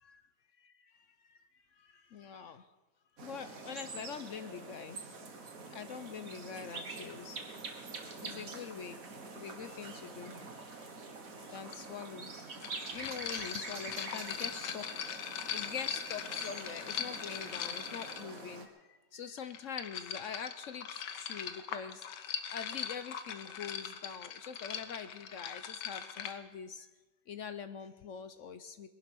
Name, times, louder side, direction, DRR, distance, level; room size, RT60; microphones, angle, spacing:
voice 1, 1.7-2.7 3.2-5.0 5.4-7.7 8.2-9.0 9.3-10.4 10.7-10.9 11.3-26.9 27.3-28.9, left 7 dB, 60° left, 11 dB, 0.8 m, -44 dB
sound 1, 3.2-18.6, right 4 dB, 55° right, 1.9 m, -46 dB
sound 2, 11.7-11.8 12.6-18.4 19.4-26.3, left 8 dB, 75° left, 1.6 m, -40 dB
21.0 x 11.0 x 6.1 m, 1.2 s
omnidirectional pair, 1.9 m